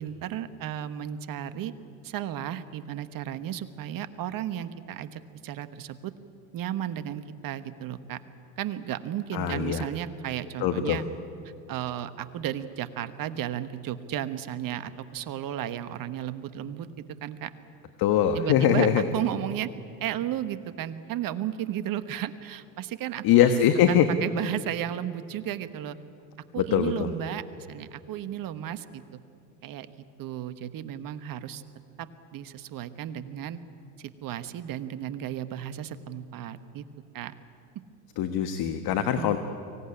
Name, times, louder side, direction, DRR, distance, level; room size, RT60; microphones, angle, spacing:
voice 1, 0.0-1.7 2.0-6.1 6.5-8.2 8.6-11.0 11.7-16.9 17.2-17.5 18.3-19.7 20.0-23.2 23.9-26.0 26.5-29.2 29.6-29.9 30.2-31.6 32.0-33.6 34.0-36.8 37.1-37.3 39.2-39.4, right 11 dB, 45° right, 12 dB, 1.4 m, -34 dB
voice 2, 9.3-9.9 10.6-11.0 18.0-19.0 23.2-24.1 26.6-27.1 38.2-39.4, left 9 dB, 50° left, 8 dB, 1.5 m, -22 dB
24.0 x 17.5 x 9.9 m, 2.5 s
hypercardioid pair, 90°, 47 cm